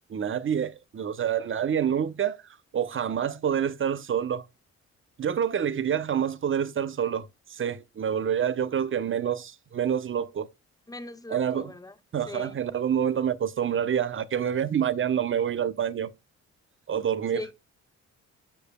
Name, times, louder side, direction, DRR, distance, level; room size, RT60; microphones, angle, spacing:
voice 1, 0.1-2.4 2.7-4.4 5.2-10.5 11.3-11.7 12.1-16.1 16.9-17.4, right 8 dB, 40° right, 0.9 m, -27 dB
voice 2, 10.9-11.9 12.3-12.5 17.3-17.5, left 2 dB, 10° left, 1.4 m, -39 dB
12.0 x 5.0 x 2.2 m
cardioid pair, 90°, 30 cm